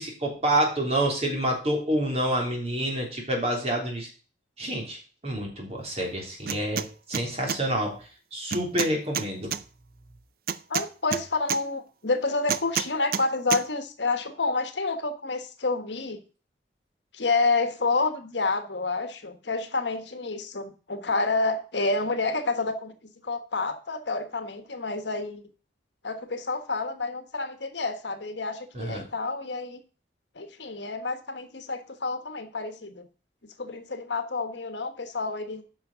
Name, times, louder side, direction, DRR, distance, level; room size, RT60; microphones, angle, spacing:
voice 1, 0.0-4.1 4.6-8.0 8.3-9.5 28.7-29.0, right 1 dB, 35° right, 0 dB, 3.4 m, -28 dB
sound 1, 6.5-6.9 7.1-7.6 8.5-9.6 10.5-11.6 12.5-13.2 13.5-13.6, right 7 dB, 50° right, 0.5 m, -28 dB
voice 2, 10.7-16.2 17.1-22.9 23.2-25.4 26.0-29.8 30.3-33.0 33.6-35.6, left 3 dB, 70° left, 8 dB, 1.4 m, -29 dB
9.3 x 6.0 x 6.1 m, 0.37 s
head